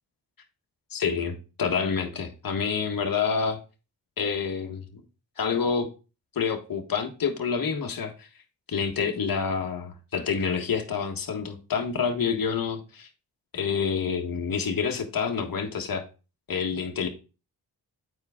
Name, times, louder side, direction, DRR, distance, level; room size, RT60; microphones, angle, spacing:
voice 1, 0.9-3.6 4.2-5.0 5.4-5.9 6.3-8.3 8.7-13.1 13.5-16.0 16.5-17.1, left 6 dB, 55° left, 3 dB, 1.5 m, -28 dB
8.9 x 4.6 x 3.6 m, 0.33 s
supercardioid pair, 45°, 42 cm